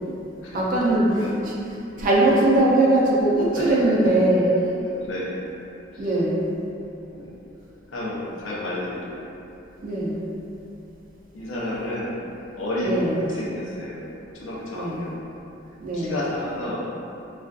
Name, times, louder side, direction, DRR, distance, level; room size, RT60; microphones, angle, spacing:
voice 1, 0.5-1.5 2.0-4.5 6.0-6.5 9.8-10.3 12.8-13.2 14.7-15.1 15.8-16.3, right 1 dB, 45° right, -5 dB, 0.4 m, -21 dB
voice 2, 3.5-4.2 4.8-5.4 5.9-6.1 7.1-7.3 7.9-9.2 11.3-12.2 12.5-14.0 14.3-15.2 15.9-16.9, left 1 dB, 90° left, -6 dB, 0.6 m, -31 dB
2.5 x 2.3 x 2.3 m, 2.8 s
head